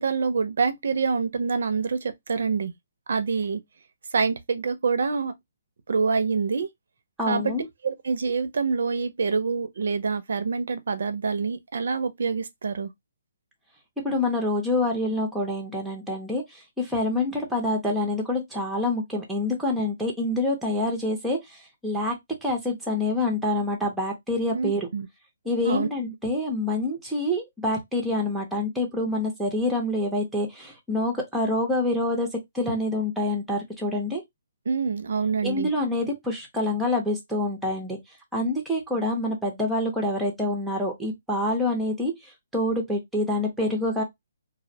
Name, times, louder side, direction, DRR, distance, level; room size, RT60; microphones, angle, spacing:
voice 1, 0.0-2.7 3.1-3.6 4.1-5.3 5.9-6.7 7.3-7.5 7.8-12.9 24.5-25.1 25.6-25.9 34.7-35.7, right 5 dB, 65° right, 0.4 m, -26 dB
voice 2, 7.2-7.6 14.0-22.1 22.4-24.9 25.5-32.3 32.5-34.2 35.4-38.0 38.3-42.1 42.5-44.0, left 1 dB, ahead, 0.5 m, -26 dB
2.4 x 2.0 x 2.6 m
hypercardioid pair, 170°, 0 cm